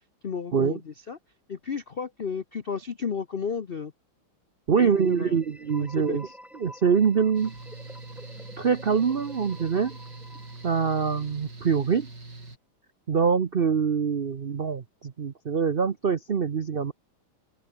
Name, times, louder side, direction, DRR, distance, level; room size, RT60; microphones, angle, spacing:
voice 1, 0.2-1.2 1.5-3.9 4.7-5.4 5.8-6.2, left 6 dB, 75° left, 0.5 m, -33 dB
voice 2, 4.7-6.3 6.6-7.5 8.6-10.0 10.6-12.1 13.1-16.9, right 6 dB, 70° right, 0.5 m, -24 dB
sound 1, 4.9-11.7, equal, ahead, 7.2 m, -49 dB
Mechanical fan, 7.3-12.6, right 2 dB, 50° right, 6.6 m, -43 dB
open air
omnidirectional pair, 2.3 m